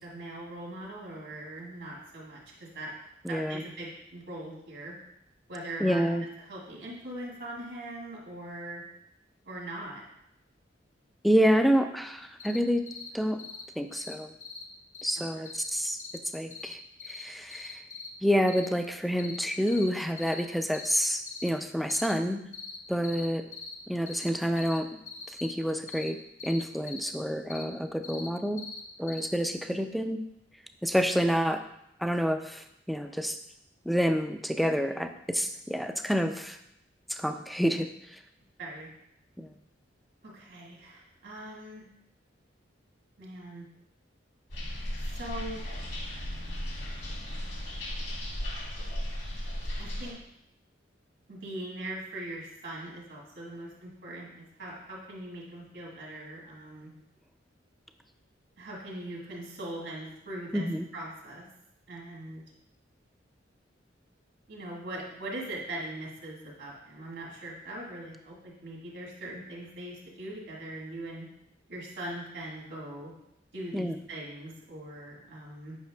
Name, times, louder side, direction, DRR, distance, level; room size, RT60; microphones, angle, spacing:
voice 1, 0.0-5.0 5.5-6.0 6.4-8.8 9.5-10.0 38.6-38.9 40.2-41.9 43.2-43.6 45.2-45.6 49.8-50.2 51.3-56.9 58.6-60.7 60.9-61.5 61.9-62.4 64.5-71.3 71.7-73.1 73.5-75.8, right 1 dB, 75° right, -3 dB, 1.8 m, -41 dB
voice 2, 3.2-3.6 5.8-6.3 11.2-12.9 13.1-13.4 13.8-14.3 15.0-16.0 16.3-16.8 17.1-17.8 18.2-22.4 22.9-23.5 23.9-25.0 25.4-26.2 26.4-28.7 29.0-30.2 30.8-31.6 32.0-33.4 33.9-36.6 37.1-38.2 39.4-39.5 60.5-60.9 73.7-73.9, equal, ahead, 7 dB, 0.3 m, -28 dB
sound 1, 12.4-12.6 12.9-13.1 13.4-13.6 13.9-14.1 14.4-14.6 14.9-15.2 15.4-15.7 16.0-16.2 16.5-16.7 17.0-17.2 17.5-18.1 18.5-18.7 19.2-19.4 19.7-19.9 20.2-20.4 20.7-21.0 21.3-21.5 21.9-22.1 22.5-22.8 23.0-23.3 23.5-23.8 24.1-24.3 24.6-24.8 25.1-25.5 25.9-26.1 26.4-27.1 27.5-27.6 28.0-28.3 28.6-28.8 29.1-29.3 29.5-29.6, left 5 dB, 45° left, 0.7 m, -41 dB
sound 2, 44.5-50.1, equal, 70° left, 1.7 m, -36 dB
8.2 x 5.6 x 2.3 m, 0.81 s
head